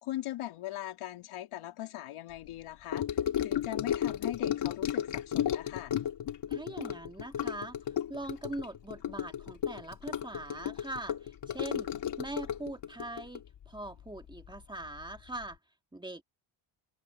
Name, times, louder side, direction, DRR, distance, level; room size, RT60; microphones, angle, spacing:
voice 1, 0.0-5.9, left 14 dB, 90° left, 3.3 m, -40 dB
Gurgling / Sink (filling or washing) / Trickle dribble, 2.9-14.6 14.8-15.2 15.4-15.5, left 10 dB, 55° left, 2.1 m, -33 dB
voice 2, 6.5-7.8 8.1-15.6 15.9-16.2, right 2 dB, 10° right, 2.0 m, -42 dB
cardioid pair, 125°, 49 cm